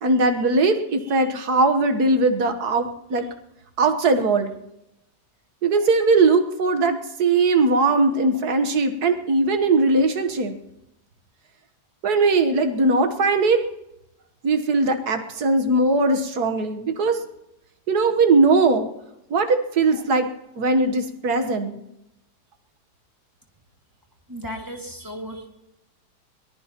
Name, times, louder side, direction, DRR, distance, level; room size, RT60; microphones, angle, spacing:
voice 1, 0.0-3.3 3.8-4.5 5.6-10.6 12.0-13.6 14.4-17.2 17.9-18.9 19.3-20.3 20.6-21.8, right 3 dB, 65° right, 7 dB, 1.7 m, -20 dB
voice 2, 24.3-25.5, equal, 10° right, 2 dB, 2.0 m, -35 dB
23.0 x 18.5 x 3.0 m, 0.88 s
omnidirectional pair, 1.8 m